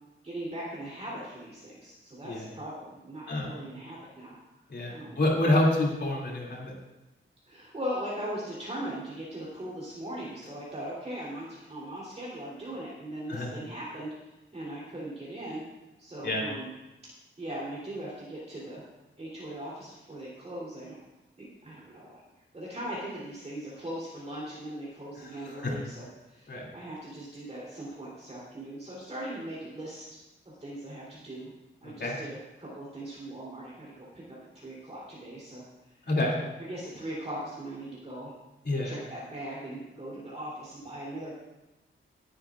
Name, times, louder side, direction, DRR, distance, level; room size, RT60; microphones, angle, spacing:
voice 1, 0.2-4.3 4.9-5.2 7.4-14.1 14.5-15.6 16.0-16.7 17.4-18.8 19.2-21.0 21.4-22.2 22.5-30.0 30.4-31.5 31.8-35.6 36.6-38.3 38.8-41.4, right 1 dB, 30° right, -7 dB, 3.4 m, -39 dB
voice 2, 4.7-6.7 13.3-13.5 16.2-16.4 25.5-25.7 26.5-26.7 31.8-32.1 36.1-36.3 38.6-38.9, left 1 dB, 55° left, -3 dB, 2.8 m, -27 dB
19.5 x 9.8 x 2.5 m, 1.0 s
wide cardioid pair, 170°, 21 cm